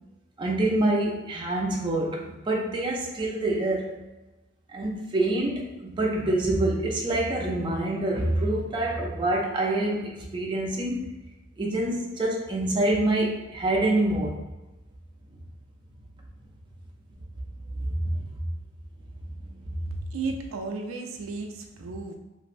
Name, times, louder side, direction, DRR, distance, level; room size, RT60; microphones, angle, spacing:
voice 1, 0.4-4.0 4.7-11.1 11.6-14.3 17.8-18.2, right 1 dB, 25° right, -2 dB, 0.4 m, -26 dB
voice 2, 19.9-22.1, right 3 dB, 90° right, 3 dB, 0.4 m, -34 dB
3.1 x 2.6 x 2.5 m, 1.0 s
head